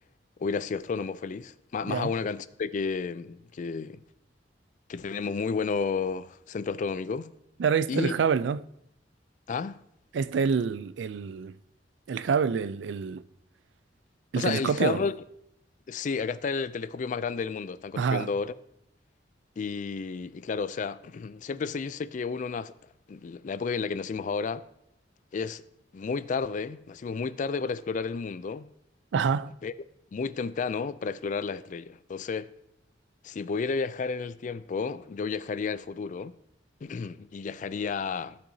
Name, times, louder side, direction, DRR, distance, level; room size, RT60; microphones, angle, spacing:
voice 1, 0.4-4.0 4.9-7.3 7.9-8.2 9.5-9.8 14.4-15.2 15.9-18.5 19.6-22.7 23.1-24.6 25.3-25.6 25.9-28.7 29.6-29.7 30.1-32.5 33.2-36.3 36.8-38.4, left 5 dB, 45° left, 0.3 m, -32 dB
voice 2, 7.6-8.6 10.1-11.5 12.1-13.2 14.3-15.0 18.0-18.3 29.1-29.5, right 6 dB, 75° right, 0.4 m, -27 dB
15.0 x 6.5 x 2.7 m
head